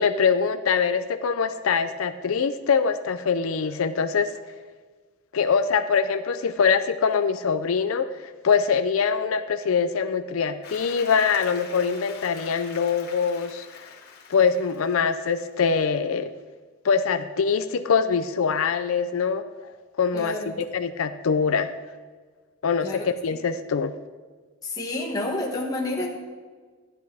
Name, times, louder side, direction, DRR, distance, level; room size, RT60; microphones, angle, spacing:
voice 1, 0.0-4.3 5.3-13.9 14.3-16.3 16.8-19.4 20.0-21.7 22.6-23.9, left 6 dB, 85° left, 10 dB, 0.5 m, -23 dB
Applause, 10.6-15.7, left 6 dB, 55° left, 1.9 m, -45 dB
voice 2, 20.1-20.5 22.8-23.1 24.6-26.1, left 2 dB, 20° left, -2 dB, 1.8 m, -29 dB
14.0 x 10.5 x 3.5 m, 1.5 s
head